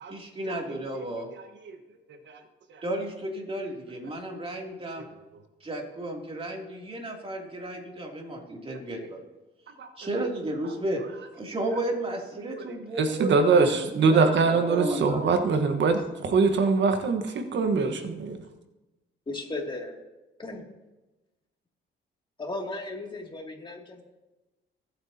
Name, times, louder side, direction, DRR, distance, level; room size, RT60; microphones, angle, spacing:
voice 1, 0.1-1.3 2.8-5.1 5.6-9.2 10.0-11.0 11.3-15.3, right 1 dB, 30° right, 0 dB, 2.8 m, -33 dB
voice 2, 13.0-18.4, right 4 dB, 65° right, 6 dB, 1.4 m, -23 dB
voice 3, 19.3-20.0 20.4-20.7 22.4-24.0, left 2 dB, 25° left, 0 dB, 2.5 m, -35 dB
24.0 x 8.2 x 2.9 m, 1.1 s
cardioid pair, 90°, 20 cm